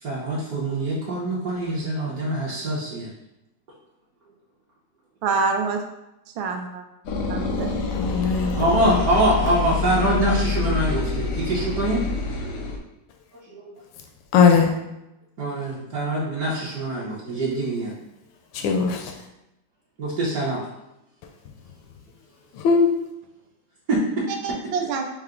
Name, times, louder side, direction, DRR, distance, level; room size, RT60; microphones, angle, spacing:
voice 1, 0.0-3.1 7.2-7.7 8.2-12.1 13.5-13.8 15.4-17.9 20.0-20.6 23.9-24.6, right 1 dB, 60° right, -6 dB, 1.2 m, -24 dB
voice 2, 5.2-5.8 6.4-6.8 7.3-7.7 24.4-25.0, right 4 dB, 85° right, 4 dB, 1.4 m, -25 dB
sound 1, 7.0-12.8, left 4 dB, 70° left, 0.8 m, -27 dB
voice 3, 7.9-9.0 14.3-14.7 18.5-19.1 22.5-22.9, left 5 dB, 90° left, 3 dB, 1.3 m, -19 dB
5.6 x 2.1 x 3.6 m, 0.91 s
omnidirectional pair, 2.0 m